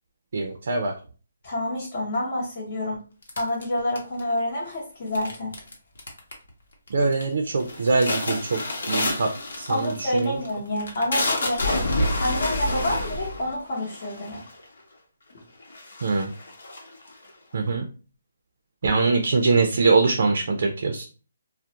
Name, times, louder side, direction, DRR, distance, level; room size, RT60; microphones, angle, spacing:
voice 1, 0.3-0.9 6.9-8.6 8.9-9.3 9.6-10.4 16.0-16.3 17.5-17.9 18.8-21.0, right 3 dB, 55° right, 4 dB, 0.4 m, -23 dB
voice 2, 1.4-3.0 3.4-5.5 9.7-11.8 12.2-14.4, left 1 dB, 35° left, -6 dB, 0.8 m, -28 dB
sound 1, 3.3-4.4 5.1-5.7 6.0-6.5 6.9-7.2 7.6-14.6 15.3-15.4 15.7-17.3, left 1 dB, 75° left, 0.9 m, -28 dB
2.3 x 2.0 x 2.8 m, 0.36 s
hypercardioid pair, 165°, 0 cm